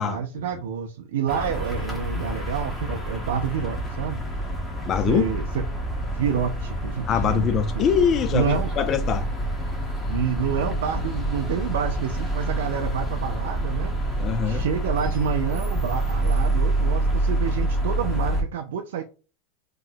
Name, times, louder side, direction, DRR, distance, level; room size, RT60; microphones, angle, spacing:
voice 1, 0.0-4.2 5.1-5.6 6.1-7.9 8.3-8.7 10.1-19.0, right 7 dB, 85° right, 0.4 m, -28 dB
sound 1, 1.3-18.4, right 1 dB, 5° left, 0.9 m, -27 dB
voice 2, 4.9-5.3 7.1-9.3 14.2-14.6, left 7 dB, 30° left, 0.4 m, -23 dB
3.0 x 2.1 x 3.8 m
supercardioid pair, 145°, 0 cm